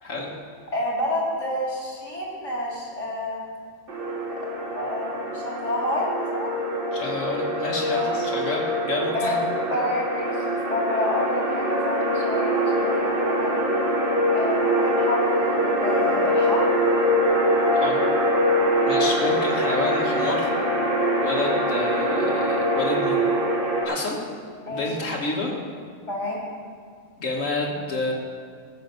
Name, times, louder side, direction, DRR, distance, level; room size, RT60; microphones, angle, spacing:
voice 1, 0.7-3.4 4.4-6.5 7.9-8.3 9.1-9.4 9.7-13.6 14.3-16.6 21.4-21.5 24.7-24.9 26.1-26.4, left 1 dB, 65° left, -4 dB, 3.4 m, -29 dB
sound 1, 3.9-23.8, equal, 45° right, 1.6 m, -23 dB
voice 2, 6.9-9.4 17.7-18.0 18.9-20.5 21.2-23.2 23.8-24.2 24.7-25.5 27.2-28.1, left 2 dB, 85° left, -2 dB, 2.2 m, -29 dB
14.5 x 7.1 x 6.0 m, 2.1 s
omnidirectional pair, 1.3 m